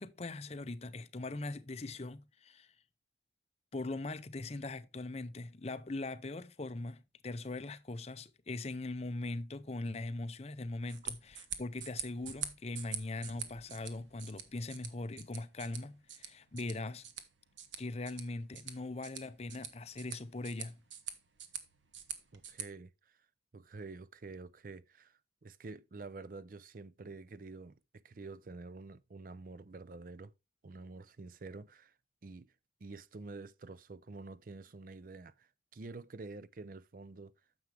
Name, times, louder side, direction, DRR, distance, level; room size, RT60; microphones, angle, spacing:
voice 1, 0.0-2.7 3.7-17.1 17.8-20.8, left 2 dB, 35° left, 0.6 m, -41 dB
sound 1, 10.8-22.6, right 8 dB, 85° right, 1.2 m, -46 dB
voice 2, 22.3-23.2 23.5-30.3 30.6-31.9 32.2-32.5 32.8-37.3, right 3 dB, 45° right, 0.5 m, -48 dB
9.5 x 7.1 x 3.3 m
head